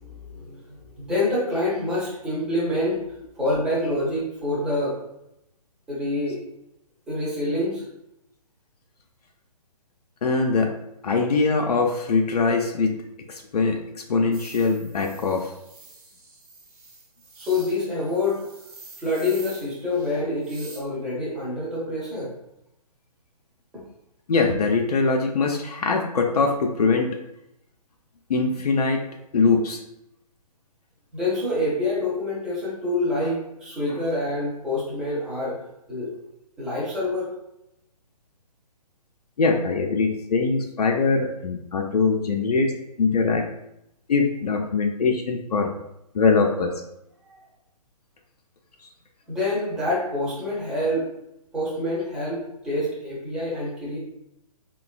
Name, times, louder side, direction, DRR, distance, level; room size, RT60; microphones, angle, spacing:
voice 1, 0.0-3.0 3.4-5.0 5.9-6.4 7.1-7.8 17.4-18.4 19.0-22.3 31.1-35.6 35.9-36.1 36.6-37.3 47.3-47.4 49.3-51.1 51.5-54.0, left 1 dB, 5° right, -7 dB, 0.5 m, -26 dB
voice 2, 10.2-10.7 11.0-13.0 13.3-15.5 24.3-27.1 28.3-29.0 29.3-29.8 33.9-34.0 39.4-42.7 43.0-43.5 44.1-45.7 46.1-46.7 48.8-48.9, left 4 dB, 70° left, 1 dB, 0.4 m, -22 dB
sound 1, 14.3-20.8, right 3 dB, 60° right, 0.9 m, -47 dB
3.0 x 2.2 x 2.3 m, 0.82 s
figure-of-eight pair, 135°, 20 cm